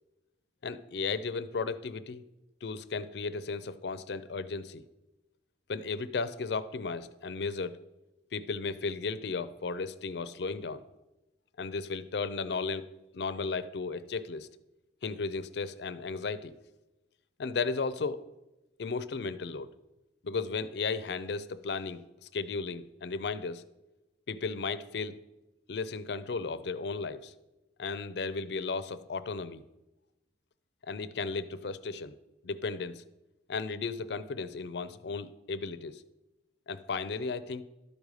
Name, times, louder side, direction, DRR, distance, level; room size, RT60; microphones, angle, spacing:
voice 1, 0.6-2.2 2.6-4.8 5.7-7.8 8.3-10.8 11.6-12.9 13.1-14.5 15.0-16.5 17.4-18.3 18.8-19.7 20.2-23.7 24.3-25.2 25.7-27.3 27.8-29.6 30.8-32.1 32.4-33.0 33.5-36.0 36.7-37.6, left 4 dB, 70° left, 14 dB, 0.5 m, -35 dB
12.0 x 5.3 x 4.8 m, 0.97 s
head